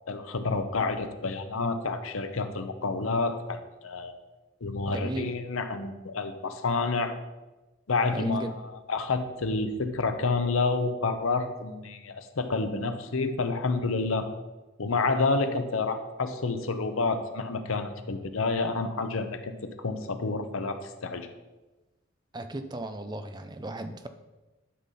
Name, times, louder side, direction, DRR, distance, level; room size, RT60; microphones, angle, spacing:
voice 1, 0.1-4.1 4.6-7.1 7.9-14.3 14.8-21.3, left 3 dB, 85° left, 8 dB, 0.8 m, -29 dB
voice 2, 4.9-5.3 8.1-8.6 22.3-24.1, right 2 dB, 20° right, 8 dB, 0.5 m, -35 dB
11.5 x 5.5 x 4.2 m, 1.1 s
head